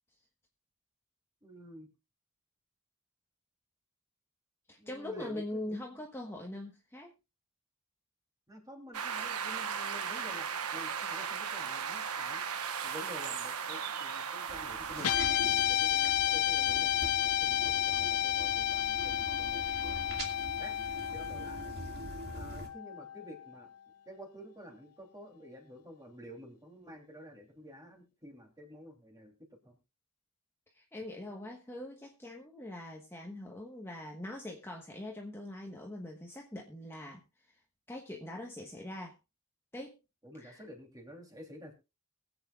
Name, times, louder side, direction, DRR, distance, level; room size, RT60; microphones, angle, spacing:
voice 1, 1.4-1.9 4.8-5.8 8.5-15.2 15.7-20.8 21.1-21.7 22.3-23.7 24.0-29.8 40.2-41.7, equal, 15° right, 2 dB, 3.1 m, -50 dB
voice 2, 4.7-7.1 30.7-37.5 37.9-39.2 39.7-40.0 40.4-40.6, left 1 dB, 10° left, 0 dB, 1.3 m, -42 dB
sound 1, 8.9-15.2, right 7 dB, 90° right, 1.1 m, -36 dB
sound 2, 14.5-22.7, right 2 dB, 45° right, 2.4 m, -44 dB
Guitar, 15.0-23.5, left 12 dB, 85° left, 0.6 m, -31 dB
23.0 x 8.2 x 2.4 m, 0.27 s
head